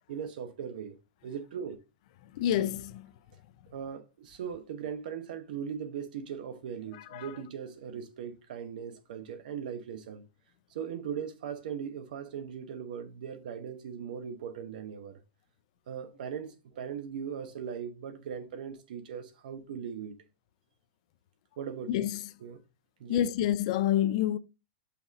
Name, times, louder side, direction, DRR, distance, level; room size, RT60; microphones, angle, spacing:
voice 1, 0.1-1.0 1.2-1.8 3.7-10.2 10.7-15.2 15.9-20.2 21.6-22.6 23.0-23.2, right 7 dB, 55° right, 1.1 m, -39 dB
voice 2, 2.3-3.1 7.1-7.3 21.9-22.2 23.1-24.4, left 11 dB, 40° left, 0.4 m, -28 dB
5.7 x 4.1 x 4.1 m
supercardioid pair, 170°, 5 cm